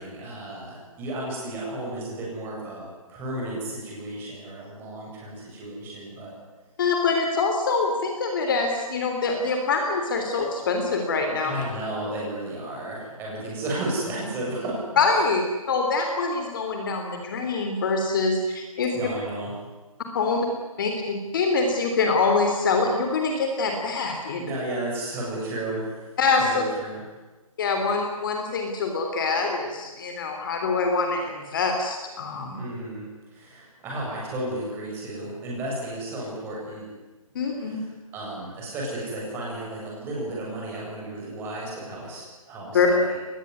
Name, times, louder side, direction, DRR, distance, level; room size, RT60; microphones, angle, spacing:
voice 1, 0.0-6.3 11.4-14.9 18.9-19.5 24.3-26.1 26.4-27.0 32.5-36.9 37.5-37.9 38.1-42.2 42.5-43.2, right 1 dB, 10° right, -3 dB, 7.9 m, -33 dB
voice 2, 6.8-11.5 15.0-15.4 15.7-18.9 20.1-20.4 20.8-24.5 26.2-26.6 27.6-32.6 37.3-37.8 42.7-42.9, left 4 dB, 35° left, 3 dB, 3.4 m, -24 dB
23.5 x 20.5 x 9.8 m, 1.2 s
hypercardioid pair, 165°, 18 cm